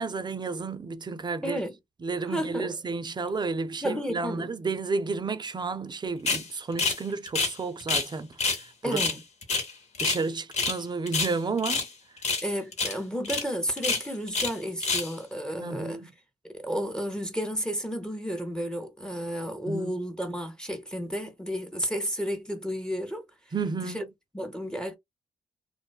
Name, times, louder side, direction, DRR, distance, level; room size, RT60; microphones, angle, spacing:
voice 1, 0.0-1.6 2.0-9.0 10.0-11.9 15.6-16.1 19.7-20.0 23.5-24.0, right 4 dB, 35° right, 0.5 m, -32 dB
voice 2, 1.4-1.8 2.2-2.8 3.8-4.5 8.8-9.2 12.4-16.0 16.4-23.2 23.8-24.0 24.3-25.0, equal, 5° left, 0.8 m, -32 dB
sound 1, 6.3-6.5 6.8-7.0 7.3-8.1 8.4-8.6 8.9-10.2 10.5-10.8 11.1-11.9 12.2-12.5 12.7-13.0 13.2-13.4 13.8-14.5 14.8-15.1, left 4 dB, 60° left, 1.3 m, -27 dB
2.5 x 2.2 x 2.3 m
supercardioid pair, 45°, 13 cm